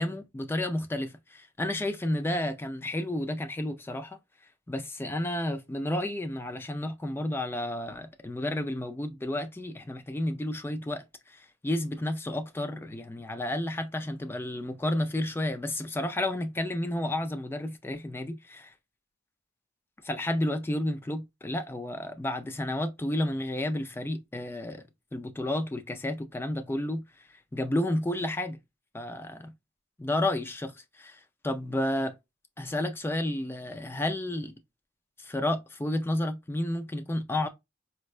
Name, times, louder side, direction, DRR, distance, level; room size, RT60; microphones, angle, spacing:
voice 1, 0.0-4.2 4.7-18.7 20.0-24.8 25.1-27.0 27.5-28.6 28.9-29.5 30.0-32.1 32.6-34.5 35.2-37.5, left 1 dB, 10° left, 0.3 m, -31 dB
4.3 x 2.1 x 2.4 m
head